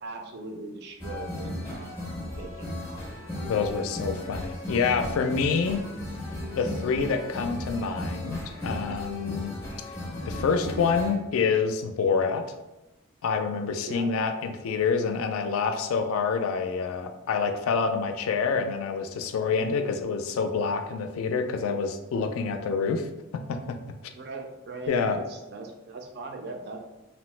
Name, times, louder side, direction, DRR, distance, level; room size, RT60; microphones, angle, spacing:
voice 1, 0.0-3.0 13.9-14.0 19.5-19.7 24.1-26.8, right 3 dB, 50° right, 3 dB, 0.4 m, -40 dB
sound 1, 1.0-11.1, left 1 dB, 10° left, 0.5 m, -35 dB
voice 2, 3.5-5.9 6.6-9.5 10.2-12.4 13.2-23.1 23.5-23.6 24.9-25.2, left 5 dB, 85° left, 7 dB, 0.3 m, -27 dB
2.9 x 2.0 x 3.1 m, 1.0 s
head